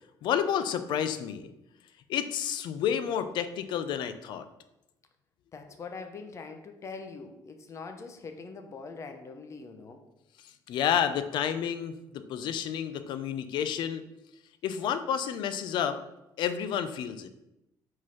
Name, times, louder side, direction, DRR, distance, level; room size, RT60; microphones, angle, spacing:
voice 1, 0.2-1.5 2.1-4.5 10.7-14.0 14.6-16.0 16.4-17.3, left 9 dB, 75° left, 11 dB, 0.6 m, -30 dB
voice 2, 5.5-10.0, left 4 dB, 40° left, 6 dB, 0.9 m, -43 dB
5.2 x 4.0 x 5.5 m, 0.90 s
cardioid pair, 125°, 8 cm